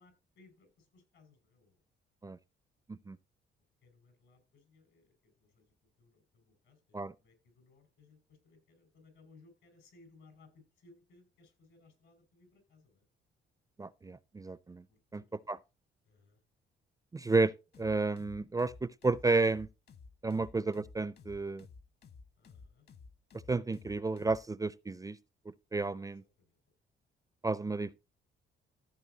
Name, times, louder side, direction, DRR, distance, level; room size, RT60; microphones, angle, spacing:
voice 1, 0.0-1.8 3.8-13.0 14.9-15.4 16.0-16.4 20.4-20.5 22.4-22.9 26.0-26.6, left 3 dB, 75° left, 5.6 m, -63 dB
voice 2, 13.8-14.8 15.1-15.2 15.5-15.6 17.1-17.5 17.8-19.7 20.2-21.7 23.5-25.2 25.7-26.2 27.4-27.9, right 3 dB, 15° right, 0.4 m, -31 dB
sound 1, 17.7-24.4, left 5 dB, 55° left, 1.3 m, -54 dB
14.5 x 8.1 x 2.8 m
cardioid pair, 90°, 20 cm